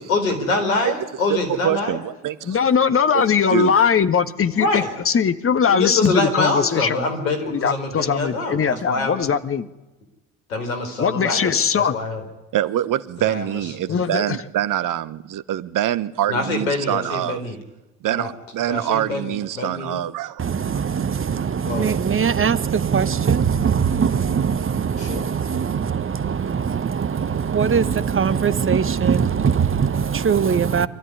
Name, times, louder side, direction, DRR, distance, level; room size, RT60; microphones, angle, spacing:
voice 1, 0.0-2.0 4.5-4.9 5.7-9.3 10.5-12.2 13.2-13.6 13.9-14.0 16.3-17.6 18.1-18.3 18.7-20.0 21.6-21.9 25.0-25.3, left 2 dB, 85° left, 4.4 m, -25 dB
voice 2, 1.6-2.6 3.1-3.2 3.5-3.7 12.5-17.4 18.0-20.8, right 12 dB, 50° right, 1.2 m, -25 dB
voice 3, 2.4-7.0 7.5-9.7 11.0-12.0 13.9-14.4, left 7 dB, 35° left, 1.6 m, -20 dB
voice 4, 20.4-30.9, right 7 dB, 30° right, 1.3 m, -21 dB
25.0 x 13.5 x 9.8 m
hypercardioid pair, 60°, 40 cm